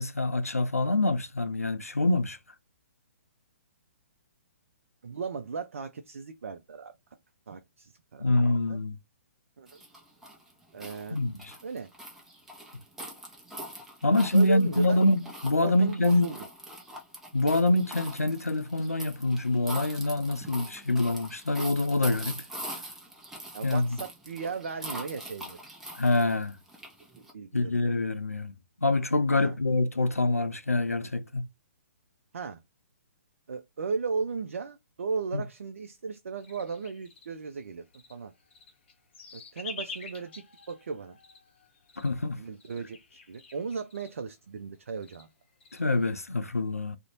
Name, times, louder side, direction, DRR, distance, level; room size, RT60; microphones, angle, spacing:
voice 1, 0.0-2.4 8.2-9.0 11.1-11.5 14.0-16.3 17.3-22.4 23.6-24.0 26.0-26.6 27.5-28.5 28.8-31.4 35.3-35.4 42.0-42.4 45.7-47.0, left 2 dB, 90° left, 0.4 m, -25 dB
voice 2, 5.0-6.9 7.5-8.8 9.6-9.8 10.7-11.2 11.6-11.9 14.3-15.0 15.6-16.4 20.9-21.1 23.5-25.6 27.2-27.8 29.3-29.6 32.3-32.6 33.5-38.3 39.3-41.2 42.4-45.3, right 5 dB, 65° right, 0.4 m, -36 dB
sound 1, 9.7-27.3, equal, 5° right, 0.5 m, -43 dB
sound 2, 36.4-44.3 44.6-44.7 45.0-46.1, left 4 dB, 50° left, 0.7 m, -48 dB
2.5 x 2.0 x 2.9 m
figure-of-eight pair, 125°, 8 cm